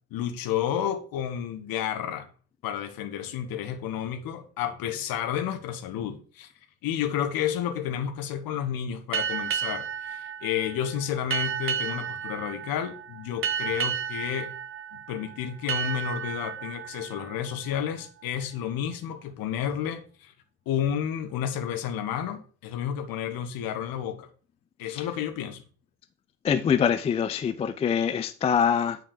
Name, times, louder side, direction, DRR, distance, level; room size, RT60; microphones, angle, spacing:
voice 1, 0.1-2.3 2.6-6.5 6.8-14.5 14.9-20.3 20.7-24.3 24.8-25.6, left 9 dB, 50° left, 1.3 m, -31 dB
sound 1, 9.1-18.4, right 8 dB, 25° right, 0.8 m, -33 dB
voice 2, 26.4-29.0, left 7 dB, 15° left, 0.4 m, -24 dB
8.8 x 3.6 x 6.7 m
figure-of-eight pair, 55°, 46 cm